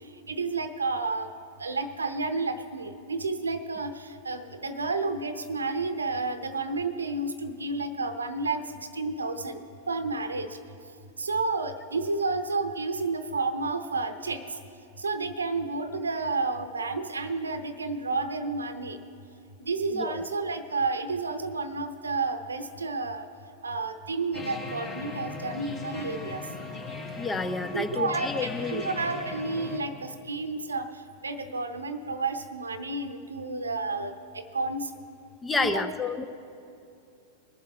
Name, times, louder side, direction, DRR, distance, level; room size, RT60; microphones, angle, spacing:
voice 1, 0.3-1.3 1.6-10.5 11.2-14.4 15.0-19.0 19.6-23.3 23.6-26.4 27.7-30.9 31.2-34.9 35.6-35.9, right 3 dB, 85° right, 10 dB, 0.8 m, -31 dB
voice 2, 19.9-20.2 27.2-28.8 35.4-36.3, left 3 dB, 15° left, 9 dB, 0.7 m, -30 dB
sound 1, 24.3-29.8, left 3 dB, 35° left, 2.9 m, -38 dB
21.5 x 7.4 x 4.4 m, 2.7 s
figure-of-eight pair, 95°, 0 cm